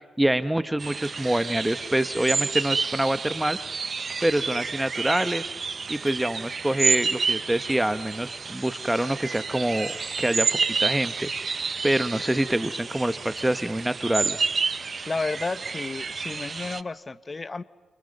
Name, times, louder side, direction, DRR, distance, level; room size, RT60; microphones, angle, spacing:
voice 1, 0.2-3.6 4.2-5.5 5.9-11.3 11.8-14.5, right 1 dB, 10° right, 12 dB, 1.2 m, -26 dB
sound 1, 0.8-16.8, right 5 dB, 50° right, 0.9 m, -30 dB
voice 2, 15.1-17.6, left 3 dB, 35° left, 15 dB, 1.1 m, -32 dB
29.0 x 28.0 x 5.5 m, 1.4 s
hypercardioid pair, 45°, 0 cm